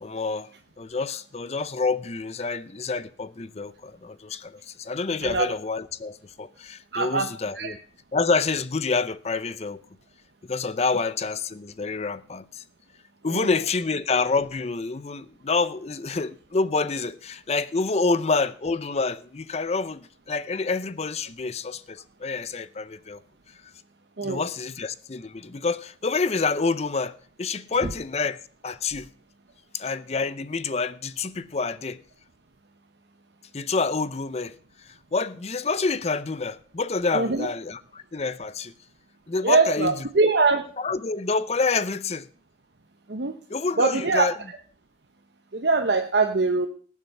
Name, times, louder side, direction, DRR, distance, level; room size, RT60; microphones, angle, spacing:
voice 1, 0.0-0.5 0.8-7.8 8.1-9.8 10.5-12.6 13.2-23.2 24.2-29.1 29.7-32.0 33.5-38.7 39.3-39.9 40.8-42.3 43.5-44.3, left 4 dB, 35° left, 0.6 m, -27 dB
voice 2, 6.9-7.3 7.5-7.8 13.3-13.5 24.2-24.4 37.1-37.5 39.4-40.6 43.1-43.4 43.8-44.3 45.5-46.7, right 3 dB, 70° right, 1.0 m, -22 dB
18.5 x 7.4 x 5.4 m
head